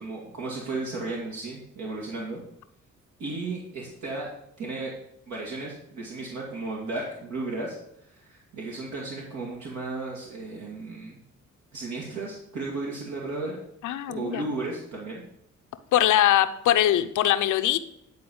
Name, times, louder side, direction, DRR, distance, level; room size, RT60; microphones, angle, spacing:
voice 1, 0.0-2.4 3.2-4.3 4.6-4.9 5.3-7.8 8.0-11.2 11.7-13.6 14.1-15.2, right 3 dB, 70° right, -3 dB, 2.1 m, -34 dB
voice 2, 13.8-14.4 15.9-17.8, left 12 dB, 80° left, 10 dB, 0.7 m, -22 dB
10.5 x 4.2 x 7.0 m, 0.78 s
cardioid pair, 90°, 30 cm